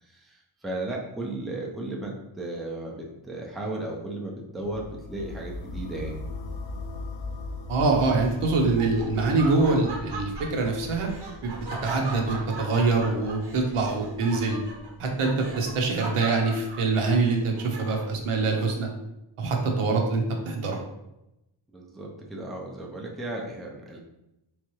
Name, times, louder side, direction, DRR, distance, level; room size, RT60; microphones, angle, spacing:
voice 1, 0.0-6.2 21.7-24.0, right 2 dB, ahead, -1 dB, 0.4 m, -35 dB
sound 1, 4.6-14.6, left 3 dB, 60° left, 0.6 m, -39 dB
voice 2, 7.7-11.1 11.4-11.5 11.8-14.6 15.0-18.9 19.4-20.8, right 3 dB, 85° right, 2 dB, 0.9 m, -24 dB
Laughter, 8.2-18.2, right 3 dB, 55° right, 0.8 m, -39 dB
3.5 x 3.2 x 3.1 m, 0.89 s
wide cardioid pair, 135°, 50 cm